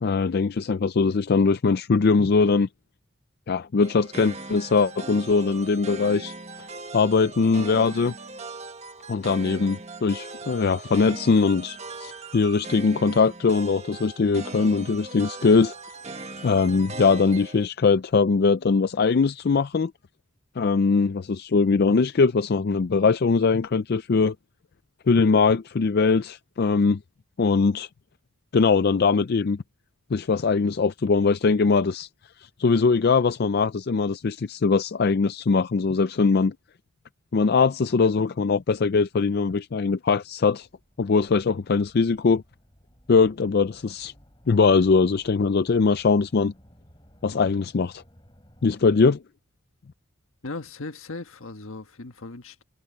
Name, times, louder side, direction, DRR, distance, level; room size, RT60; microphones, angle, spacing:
voice 1, 0.0-2.7 3.5-6.3 6.9-8.1 9.1-15.7 16.4-19.9 20.6-24.3 25.1-27.0 27.4-27.9 28.5-29.6 30.1-32.1 32.6-36.5 37.3-40.7 41.0-42.4 43.1-44.1 44.5-46.5 47.2-48.0 48.6-49.2, left 4 dB, 50° left, 0.4 m, -21 dB
sound 1, 3.8-17.7, right 3 dB, 30° right, 1.3 m, -39 dB
sound 2, 40.6-48.8, equal, 20° left, 6.7 m, -56 dB
voice 2, 50.4-52.6, left 3 dB, 75° left, 1.4 m, -37 dB
head